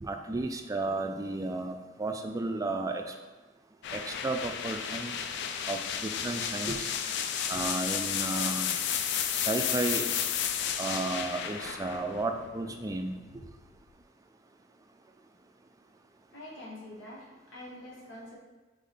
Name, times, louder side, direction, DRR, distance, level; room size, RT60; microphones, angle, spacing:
voice 1, 0.0-3.1 3.9-5.1 5.7-6.9 7.5-8.7 9.4-10.0 10.8-13.1, right 2 dB, 20° right, 5 dB, 0.3 m, -33 dB
sound 1, 3.8-13.6, left 8 dB, 60° left, 0.3 m, -33 dB
voice 2, 16.3-18.3, left 1 dB, 80° left, -6 dB, 1.5 m, -45 dB
3.7 x 3.5 x 4.0 m, 1.2 s
head